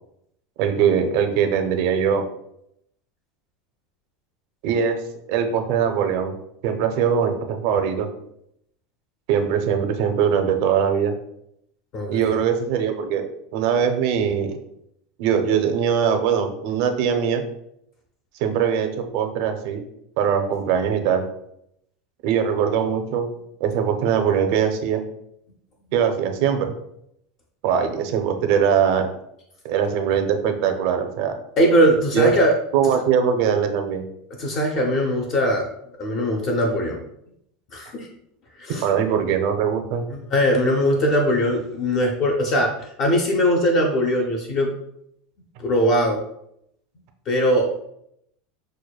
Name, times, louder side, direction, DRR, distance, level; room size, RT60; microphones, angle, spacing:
voice 1, 0.6-2.2 4.6-5.0 5.3-6.4 6.6-8.1 9.3-11.1 12.1-14.5 15.2-17.4 18.4-19.8 20.2-21.2 22.2-23.3 23.6-25.0 25.9-26.7 27.6-29.1 29.6-31.3 32.1-32.3 32.7-34.0 38.8-40.0, right 7 dB, 55° right, 6 dB, 0.5 m, -21 dB
voice 2, 11.9-12.4 31.6-32.5 34.4-35.7 36.0-37.0 37.7-38.1 38.6-38.8 40.1-44.7 45.6-46.2 47.3-47.8, equal, 40° left, 1 dB, 0.5 m, -20 dB
6.3 x 2.1 x 2.3 m, 0.76 s
supercardioid pair, 155°, 0 cm